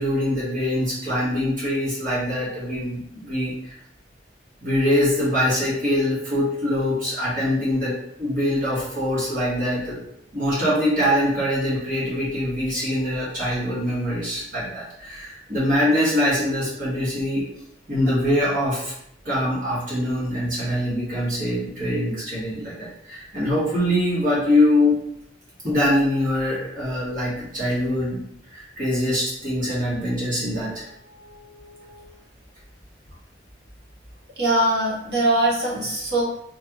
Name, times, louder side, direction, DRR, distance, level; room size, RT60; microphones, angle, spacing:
voice 1, 0.0-3.8 4.6-7.9 8.2-10.0 10.3-17.4 17.9-18.9 19.2-24.9 25.6-28.2 28.5-30.9 31.2-32.1, left 1 dB, 50° right, -9 dB, 1.3 m, -23 dB
voice 2, 34.4-36.2, right 1 dB, 65° right, -4 dB, 1.0 m, -21 dB
3.2 x 2.3 x 2.9 m, 0.74 s
head